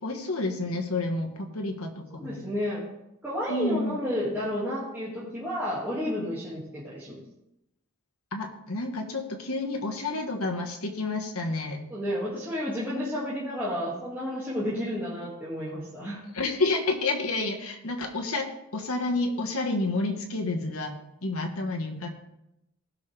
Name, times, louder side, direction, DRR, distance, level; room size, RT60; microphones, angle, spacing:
voice 1, 0.0-2.4 3.5-4.0 6.1-6.3 8.3-11.9 16.3-22.1, left 2 dB, 85° left, 3 dB, 1.5 m, -30 dB
voice 2, 2.2-2.9 3.2-7.2 11.9-16.2, equal, 10° right, -10 dB, 2.2 m, -31 dB
16.0 x 6.1 x 3.4 m, 0.86 s
head